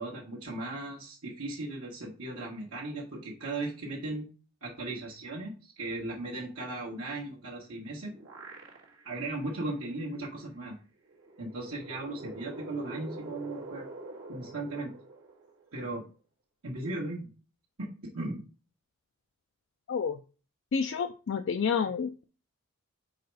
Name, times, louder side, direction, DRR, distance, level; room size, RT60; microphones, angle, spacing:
voice 1, 0.0-4.3 4.6-8.1 9.0-10.8 11.4-13.9 14.3-14.9 15.7-16.0 16.6-17.3 17.8-18.4, right 2 dB, 75° right, -5 dB, 1.5 m, -37 dB
sound 1, 7.7-9.2 9.7-9.8 11.1-15.8, right 2 dB, 60° right, 1.7 m, -45 dB
voice 2, 19.9-20.2 20.7-22.2, left 6 dB, 55° left, 7 dB, 0.4 m, -29 dB
4.8 x 4.2 x 4.7 m, 0.36 s
head